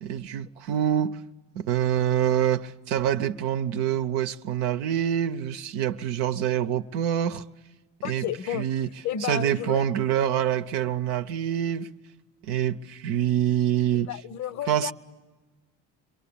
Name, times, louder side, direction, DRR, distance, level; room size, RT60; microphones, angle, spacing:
voice 1, 0.0-1.3 1.5-7.4 8.0-8.3 8.5-8.9 9.2-11.9 12.5-14.1 14.7-14.9, right 10 dB, 75° right, 0.8 m, -26 dB
voice 2, 8.0-8.7 9.0-9.8 13.9-14.9, left 10 dB, 50° left, 0.8 m, -32 dB
27.5 x 23.0 x 8.6 m
supercardioid pair, 80°, 36 cm